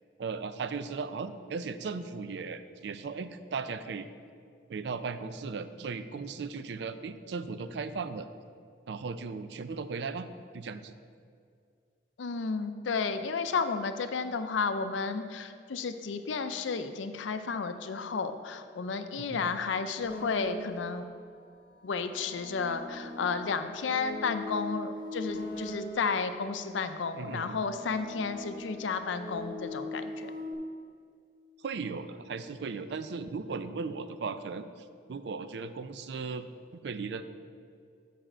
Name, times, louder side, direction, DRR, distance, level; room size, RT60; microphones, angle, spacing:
voice 1, 0.2-4.1 4.7-8.3 8.9-10.3 10.5-10.9 19.1-19.5 27.2-27.6 31.6-34.6 35.1-36.5 36.8-37.2, right 4 dB, 65° right, 11 dB, 0.4 m, -37 dB
voice 2, 12.2-21.1 21.8-30.3, left 5 dB, 85° left, 9 dB, 0.5 m, -32 dB
sound 1, 20.0-21.1 21.9-26.4 27.1-30.5, left 1 dB, 60° left, 0.9 m, -41 dB
8.9 x 5.0 x 4.4 m, 2.2 s
head